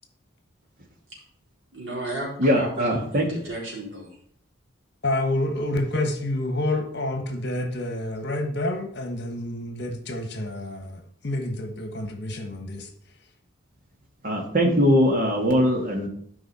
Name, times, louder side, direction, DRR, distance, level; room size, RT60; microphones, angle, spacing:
voice 1, 1.7-4.1, right 1 dB, 65° right, -4 dB, 3.9 m, -34 dB
voice 2, 2.4-3.3 14.2-16.1, equal, 45° right, 1 dB, 1.9 m, -21 dB
voice 3, 5.0-12.9, left 1 dB, 55° left, 6 dB, 1.4 m, -28 dB
12.5 x 5.3 x 4.3 m, 0.63 s
head